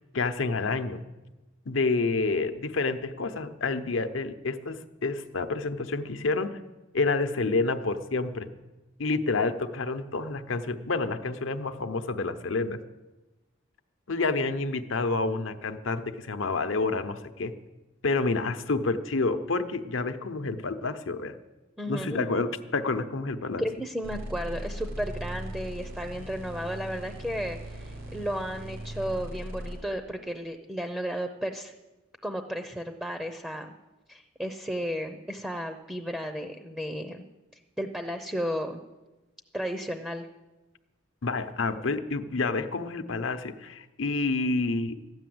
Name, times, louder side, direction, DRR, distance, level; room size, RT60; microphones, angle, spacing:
voice 1, 0.1-1.0 1.7-6.5 6.9-8.5 9.0-12.8 14.1-17.5 18.0-21.4 21.9-23.6 41.2-45.0, left 3 dB, 75° left, 9 dB, 0.8 m, -28 dB
voice 2, 21.8-22.2 23.6-31.7 32.2-33.7 34.1-37.2 37.8-38.8 39.5-40.3, equal, 5° right, 6 dB, 0.6 m, -33 dB
sound 1, 24.0-29.8, right 1 dB, 70° right, 3.6 m, -39 dB
13.0 x 9.6 x 7.8 m, 1.1 s
head